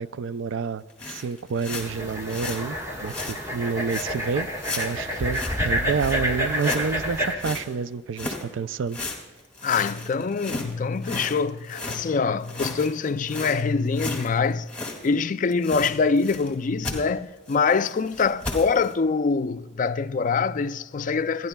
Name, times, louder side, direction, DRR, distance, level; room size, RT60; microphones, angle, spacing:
voice 1, 0.0-4.5 4.8-9.0, right 5 dB, 90° right, 0.4 m, -29 dB
sound 1, 0.9-2.6 3.1-3.4 3.9-4.2 4.6-5.6 6.0-6.2 6.6-7.6 8.2-8.4 8.9-12.0 12.4-15.1 15.4-16.5 16.8-17.0 17.5-18.9, left 2 dB, 5° left, 2.0 m, -35 dB
sound 2, 1.8-7.3, equal, 15° right, 1.4 m, -28 dB
voice 2, 9.6-14.7 15.0-21.5, left 5 dB, 45° left, 0.4 m, -24 dB
28.0 x 10.5 x 2.2 m
head